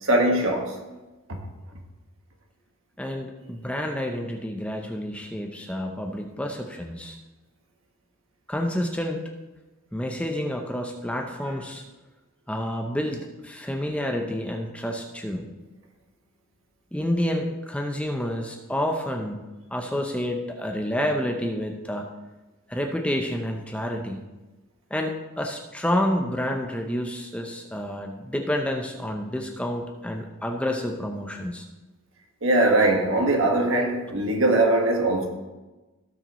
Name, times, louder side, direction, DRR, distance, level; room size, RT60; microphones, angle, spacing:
voice 1, 0.0-0.8 1.3-1.4 11.4-11.5 32.4-35.3, right 2 dB, 65° right, 2 dB, 1.6 m, -21 dB
voice 2, 3.0-7.2 8.5-9.2 9.9-11.8 12.5-15.5 16.9-19.4 19.7-22.1 22.7-24.2 24.9-31.6, left 1 dB, 5° left, 2 dB, 0.7 m, -29 dB
16.5 x 6.5 x 3.1 m, 1.1 s
head